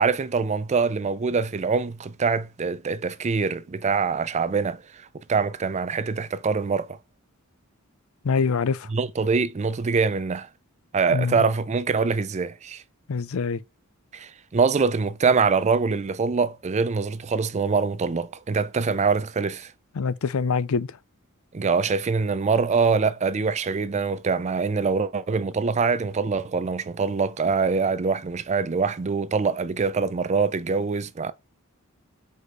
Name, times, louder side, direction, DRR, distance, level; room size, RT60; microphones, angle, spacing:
voice 1, 0.0-7.0 8.9-10.5 10.9-12.8 14.1-19.7 21.5-31.3, right 5 dB, 30° right, 0.4 m, -24 dB
voice 2, 8.2-8.9 11.1-11.4 13.1-13.6 20.0-21.0, left 5 dB, 70° left, 0.5 m, -25 dB
4.8 x 4.2 x 4.7 m
head